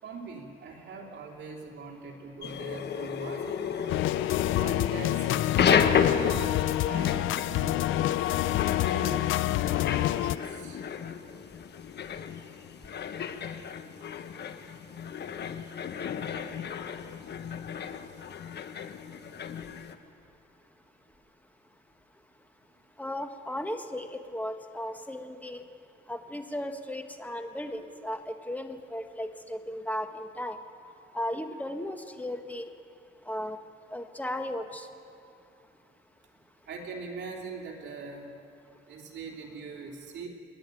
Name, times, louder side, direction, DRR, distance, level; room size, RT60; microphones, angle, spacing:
voice 1, 0.0-4.0 4.5-5.3 5.6-6.1 6.4-8.1 8.9-9.3 9.6-10.8 36.7-38.3 38.9-40.3, right 4 dB, 60° right, -1 dB, 3.1 m, -42 dB
sound 1, 2.4-19.9, left 7 dB, 60° left, 1.2 m, -32 dB
sound 2, 3.9-10.4, left 15 dB, 80° left, 0.4 m, -27 dB
voice 2, 23.0-25.7 26.1-30.6 31.1-32.7 33.3-33.6 33.9-34.9, left 1 dB, 10° left, 6 dB, 1.6 m, -36 dB
27.0 x 10.5 x 9.2 m, 2.5 s
cardioid pair, 90°, 20 cm